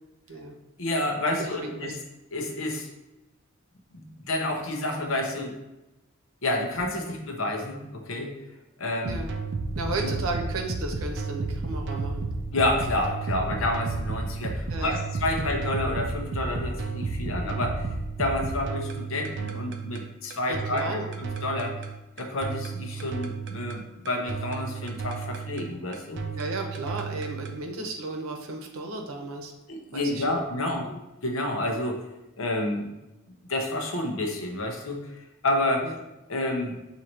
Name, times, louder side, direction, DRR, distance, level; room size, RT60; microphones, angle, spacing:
voice 1, 0.8-2.0 2.3-2.9 3.9-5.6 6.4-8.3 8.8-9.2 12.5-17.9 18.2-21.8 22.2-26.2 29.7-30.8 31.2-32.0 32.4-32.9 33.5-35.0 35.4-35.9 36.3-36.7, left 1 dB, 75° left, 2 dB, 0.8 m, -29 dB
voice 2, 1.4-1.9 9.0-9.3 9.8-12.2 14.7-15.1 15.4-15.5 20.5-21.1 26.3-29.5 29.9-30.9 35.8-35.9, right 2 dB, 90° right, 3 dB, 0.7 m, -34 dB
sound 1, 9.0-27.6, right 3 dB, 55° right, 0.4 m, -32 dB
6.3 x 2.7 x 2.9 m, 1.0 s
head